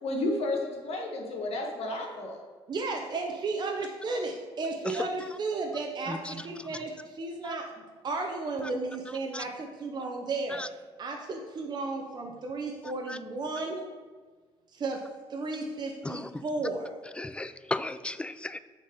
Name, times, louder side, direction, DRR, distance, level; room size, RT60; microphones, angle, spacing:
voice 1, 0.0-2.4, left 2 dB, 60° left, 1 dB, 1.6 m, -32 dB
voice 2, 2.7-7.7 8.0-10.6 11.0-13.8 14.7-15.0 15.3-16.9, right 3 dB, 40° right, 1 dB, 0.8 m, -34 dB
voice 3, 16.0-16.4 17.2-18.6, left 2 dB, 10° left, 13 dB, 0.3 m, -35 dB
6.3 x 4.5 x 5.2 m, 1.4 s
cardioid pair, 85°, 11 cm